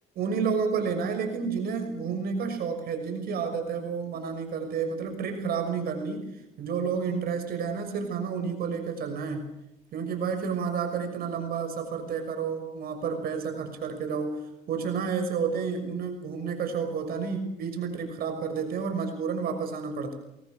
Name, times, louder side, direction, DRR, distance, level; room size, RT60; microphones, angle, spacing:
voice 1, 0.2-9.5 9.9-20.1, right 6 dB, 65° right, 6 dB, 6.1 m, -30 dB
28.0 x 22.5 x 6.3 m, 0.85 s
cardioid pair, 110°, 17 cm